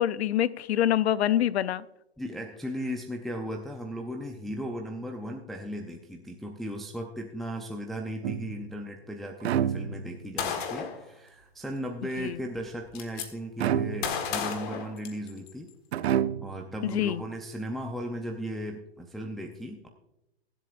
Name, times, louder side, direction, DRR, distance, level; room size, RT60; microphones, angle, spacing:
voice 1, 0.0-1.8 12.2-12.4 16.8-17.2, left 11 dB, 75° left, 18 dB, 0.6 m, -25 dB
voice 2, 2.2-15.7 16.4-19.9, equal, ahead, 1 dB, 0.6 m, -36 dB
sound 1, 8.2-8.8 9.4-10.3 13.6-14.4 15.9-16.7, right 9 dB, 75° right, 0.7 m, -29 dB
Gunshot gunfire, 10.4-11.0 12.2-12.3 12.6-13.3 14.0-15.5, left 7 dB, 45° left, 1.7 m, -32 dB
23.0 x 7.8 x 2.5 m, 0.85 s
hypercardioid pair, 125°, 33 cm